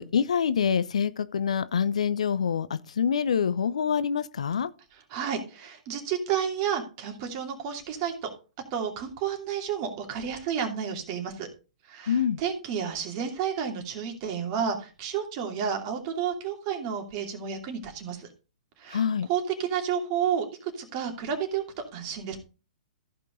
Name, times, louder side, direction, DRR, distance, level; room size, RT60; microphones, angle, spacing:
voice 1, 0.0-4.7 12.1-12.4 18.9-19.3, left 7 dB, 65° left, 0.6 m, -26 dB
voice 2, 5.1-8.3 8.7-11.5 11.9-18.3 18.8-19.0 19.3-21.6 21.9-22.4, right 8 dB, 40° right, 2.8 m, -31 dB
14.5 x 5.4 x 3.9 m
figure-of-eight pair, 115°, 4 cm